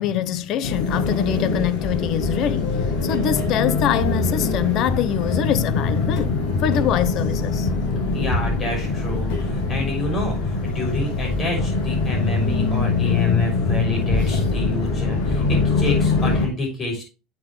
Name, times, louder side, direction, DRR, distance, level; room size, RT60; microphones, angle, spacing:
voice 1, 0.0-2.8 3.0-7.7, left 11 dB, 45° left, 0.8 m, -24 dB
sound 1, 0.6-16.5, left 3 dB, 65° left, 5.1 m, -23 dB
voice 2, 8.1-17.0, left 1 dB, 25° left, 6.0 m, -28 dB
9.1 x 8.3 x 3.2 m
cardioid pair, 150°, 0 cm